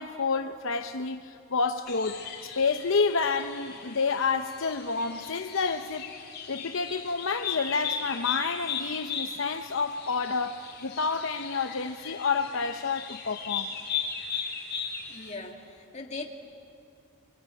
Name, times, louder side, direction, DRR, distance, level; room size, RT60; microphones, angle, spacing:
voice 1, 0.0-2.3 2.6-6.1 6.5-13.7, left 4 dB, 65° left, 0.8 m, -29 dB
sound 1, 1.9-15.4, left 7 dB, 45° left, 4.0 m, -37 dB
voice 2, 15.1-16.3, left 3 dB, 30° left, 2.1 m, -39 dB
25.0 x 25.0 x 9.0 m
head